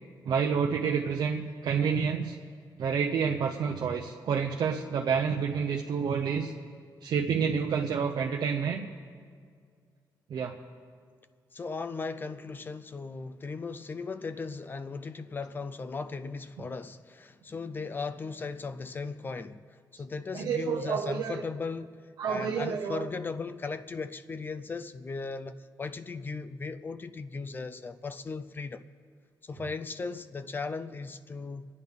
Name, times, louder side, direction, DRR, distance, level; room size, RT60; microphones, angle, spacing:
voice 1, 0.2-2.3 2.8-6.5 7.0-8.9 10.3-10.6 20.3-21.4 22.2-23.1, right 6 dB, 65° right, 0.7 m, -29 dB
voice 2, 11.5-28.8 29.4-31.7, left 4 dB, 25° left, 0.4 m, -37 dB
26.5 x 9.5 x 3.7 m
wide cardioid pair, 180°, 8 cm